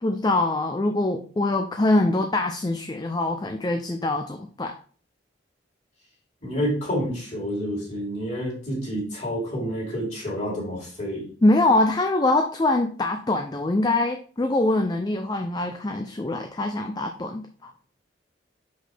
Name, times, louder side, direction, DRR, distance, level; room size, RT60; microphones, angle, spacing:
voice 1, 0.0-4.7 11.4-17.7, left 2 dB, 20° left, 5 dB, 0.4 m, -23 dB
voice 2, 6.4-11.3, equal, 35° left, -3 dB, 2.9 m, -29 dB
5.8 x 5.2 x 3.4 m, 0.43 s
head